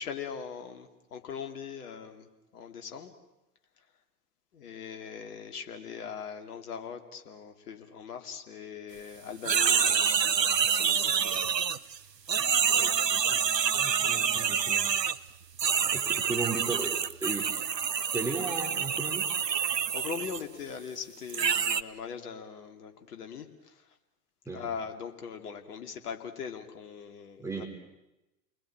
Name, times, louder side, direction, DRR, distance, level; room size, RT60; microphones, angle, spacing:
voice 1, 0.0-3.1 4.5-11.5 19.7-24.0 24.5-27.6, left 6 dB, 70° left, 6 dB, 2.8 m, -41 dB
sound 1, 9.4-12.0 12.3-15.2 15.6-20.4 21.3-21.8, right 7 dB, 90° right, 0.9 m, -27 dB
voice 2, 12.6-13.4 13.7-14.9 15.8-17.6 18.1-19.3 24.5-24.7 27.4-27.7, right 3 dB, 5° right, 0 dB, 4.1 m, -36 dB
29.5 x 20.5 x 8.8 m, 0.98 s
figure-of-eight pair, 90°, 48 cm